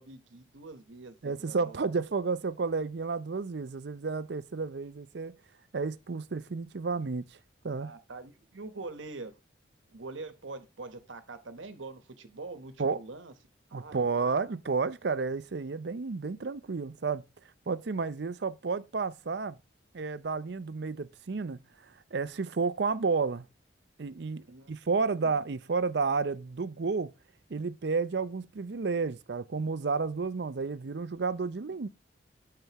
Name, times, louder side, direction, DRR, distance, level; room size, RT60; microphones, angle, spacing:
voice 1, 0.0-1.8 7.7-9.4 9.9-13.3 13.7-14.4 24.5-24.7, right 3 dB, 90° right, 1.1 m, -44 dB
voice 2, 1.2-5.3 5.7-7.3 7.6-7.9 12.8-13.0 13.7-17.2 17.7-19.6 19.9-21.6 22.1-23.5 24.0-27.1 27.5-31.9, right 4 dB, 65° right, 0.5 m, -31 dB
9.2 x 6.8 x 3.0 m
head